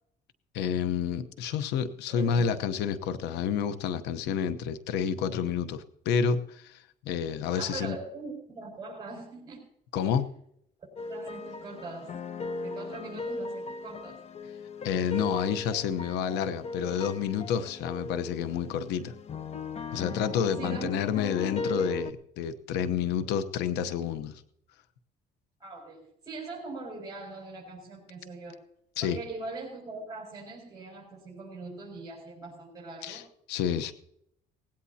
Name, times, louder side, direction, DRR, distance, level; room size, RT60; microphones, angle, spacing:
voice 1, 0.5-8.0 9.9-10.3 14.8-19.1 19.9-24.4 29.0-29.2 33.0-33.2 33.5-33.9, left 7 dB, 90° left, 13 dB, 1.0 m, -29 dB
voice 2, 2.1-2.6 7.5-9.6 10.0-10.2 11.0-12.1 12.6-14.2 20.6-21.1 25.6-28.6 29.0-33.2, right 3 dB, 25° right, -4 dB, 6.3 m, -41 dB
sound 1, 11.0-22.1, left 3 dB, 40° left, 1.0 m, -38 dB
19.0 x 16.5 x 2.8 m, 0.74 s
cardioid pair, 110°, 17 cm